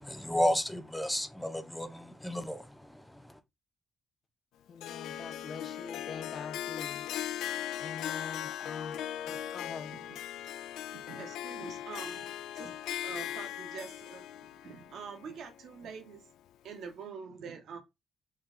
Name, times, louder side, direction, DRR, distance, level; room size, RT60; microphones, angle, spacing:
voice 1, 0.0-3.4, left 1 dB, 5° left, 0.7 m, -33 dB
voice 2, 4.7-7.1 7.8-9.0 9.2-10.0, left 5 dB, 50° left, 0.9 m, -44 dB
Harp, 4.8-16.0, left 11 dB, 85° left, 0.3 m, -39 dB
voice 3, 10.9-12.2 12.5-12.7 13.0-14.3 14.6-16.3 16.6-17.8, right 6 dB, 70° right, 1.0 m, -45 dB
4.4 x 2.3 x 3.7 m
cardioid pair, 90°, 0 cm